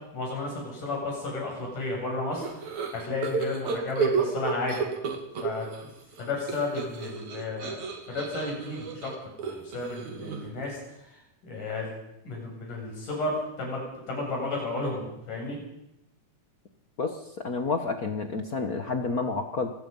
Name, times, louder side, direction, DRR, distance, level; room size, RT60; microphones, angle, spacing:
voice 1, 0.1-2.5 2.9-4.8 5.4-5.7 6.2-7.8 8.1-9.1 9.4-10.8 11.1-11.9 12.2-13.8 14.1-15.6, left 2 dB, 85° left, -1 dB, 9.2 m, -32 dB
sound 1, 2.4-5.8 6.1-10.6, right 6 dB, 65° right, 3.8 m, -31 dB
voice 2, 17.0-19.7, left 4 dB, 65° left, 6 dB, 0.9 m, -30 dB
27.5 x 19.5 x 5.5 m, 0.84 s
omnidirectional pair, 3.6 m